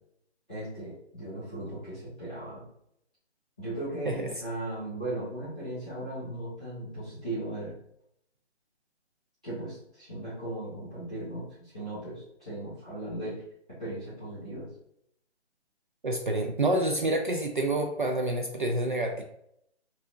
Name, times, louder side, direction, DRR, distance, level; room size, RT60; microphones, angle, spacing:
voice 1, 0.5-2.6 3.6-7.7 9.4-13.4 13.8-14.7, right 1 dB, 5° right, -17 dB, 0.7 m, -37 dB
voice 2, 16.0-19.2, right 1 dB, 45° right, 3 dB, 0.5 m, -28 dB
6.0 x 2.7 x 2.6 m, 0.74 s
hypercardioid pair, 170°, 34 cm